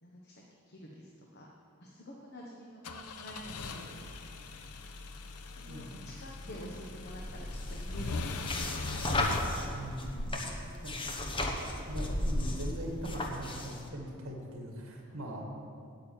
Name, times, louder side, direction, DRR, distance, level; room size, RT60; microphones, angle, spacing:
voice 1, 0.0-1.5 1.8-4.1 5.6-8.8 9.8-9.9 10.2-11.1, equal, 45° left, -1 dB, 1.1 m, -49 dB
sound 1, 2.8-9.4, left 3 dB, 90° left, 0.7 m, -40 dB
sound 2, 7.0-13.9, left 1 dB, 25° left, 1.0 m, -35 dB
voice 2, 9.7-10.3 10.8-11.2 11.9-15.4, equal, 60° right, 0 dB, 2.2 m, -41 dB
9.0 x 7.4 x 9.0 m, 2.5 s
head